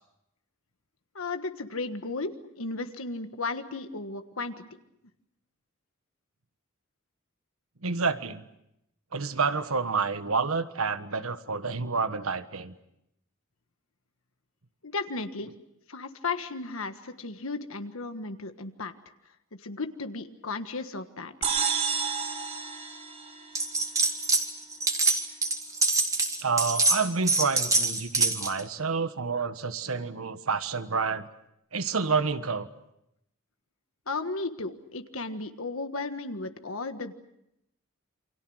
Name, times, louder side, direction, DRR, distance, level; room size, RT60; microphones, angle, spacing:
voice 1, 1.1-4.6 14.8-15.5 15.9-18.9 19.5-21.3 34.1-37.1, left 3 dB, 75° left, 8 dB, 1.5 m, -35 dB
voice 2, 7.8-8.4 9.1-12.7 26.4-31.3 31.7-32.7, right 4 dB, 85° right, 11 dB, 1.4 m, -29 dB
sound 1, 21.4-24.0, right 6 dB, 35° right, 5.0 m, -30 dB
sound 2, 23.5-24.5 24.7-28.6, right 3 dB, 15° right, 2.2 m, -25 dB
28.5 x 25.0 x 6.4 m, 0.80 s
head